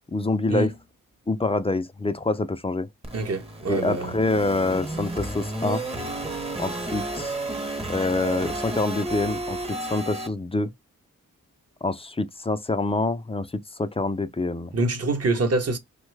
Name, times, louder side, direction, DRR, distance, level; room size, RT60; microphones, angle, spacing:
voice 1, 0.1-0.7 1.3-2.9 3.7-5.8 6.6-7.3 7.9-10.7 11.8-13.5 13.8-14.7, left 2 dB, 15° left, 0.4 m, -26 dB
sound 1, 3.0-10.3, right 2 dB, 15° right, 0.8 m, -32 dB
voice 2, 3.1-4.1 14.7-15.8, right 2 dB, 45° right, 0.9 m, -25 dB
2.9 x 2.2 x 3.2 m
cardioid pair, 60°, 34 cm